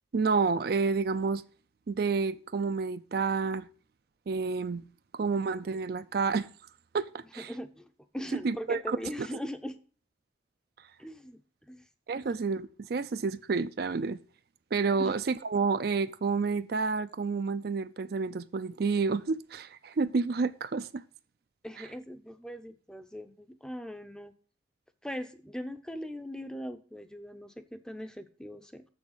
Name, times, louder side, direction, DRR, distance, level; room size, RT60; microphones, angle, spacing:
voice 1, 0.1-1.4 1.9-3.7 4.3-4.8 5.1-6.5 6.9-7.5 8.4-9.0 12.1-14.2 14.7-21.0, right 4 dB, 55° right, 0.4 m, -29 dB
voice 2, 7.4-9.8 11.0-11.4 11.7-11.8 15.0-15.1 21.6-24.3 25.0-28.8, equal, 5° left, 0.6 m, -40 dB
7.0 x 6.3 x 7.2 m
head